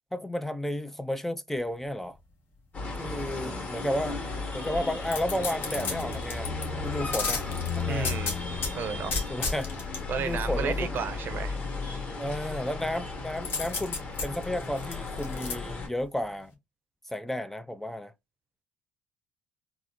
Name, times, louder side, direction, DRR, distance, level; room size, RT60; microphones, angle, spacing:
voice 1, 0.1-2.2 3.0-6.5 6.8-7.4 7.8-8.1 9.3-9.7 10.2-11.0 12.2-16.5 17.1-18.1, left 1 dB, 5° left, 0.3 m, -32 dB
sound 1, 2.7-15.9, left 4 dB, 35° left, 1.4 m, -35 dB
sound 2, 5.1-6.7 7.1-8.7 9.1-10.0 13.4-15.5 16.0-16.1, left 4 dB, 60° left, 1.3 m, -32 dB
voice 2, 7.8-8.3 8.7-9.2 10.1-11.6, right 7 dB, 55° right, 0.6 m, -33 dB
3.7 x 2.0 x 2.8 m
supercardioid pair, 80°, 4 cm